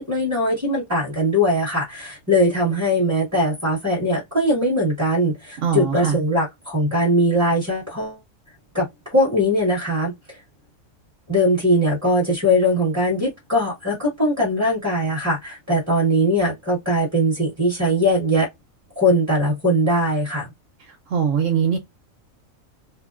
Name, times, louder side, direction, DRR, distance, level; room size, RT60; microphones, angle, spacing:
voice 1, 0.0-8.2 8.7-10.4 11.3-18.5 19.0-20.5, equal, 15° right, 1.1 m, -20 dB
voice 2, 5.6-6.2 21.1-21.8, right 7 dB, 70° right, 0.9 m, -21 dB
2.7 x 2.1 x 2.3 m
omnidirectional pair, 1.4 m